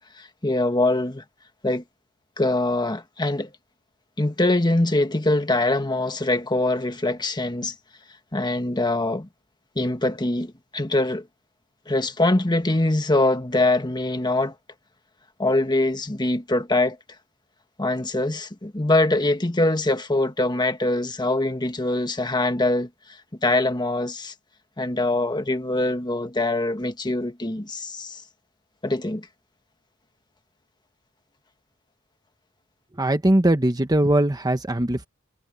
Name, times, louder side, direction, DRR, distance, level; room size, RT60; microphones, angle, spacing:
voice 1, 0.2-1.2 1.6-1.8 2.4-3.5 4.2-7.7 8.3-9.3 9.7-11.2 11.9-14.5 15.4-17.0 17.8-22.9 23.4-24.3 24.8-28.2 28.8-29.3, left 2 dB, 20° left, 1.5 m, -23 dB
voice 2, 32.9-35.1, right 1 dB, 20° right, 1.1 m, -20 dB
head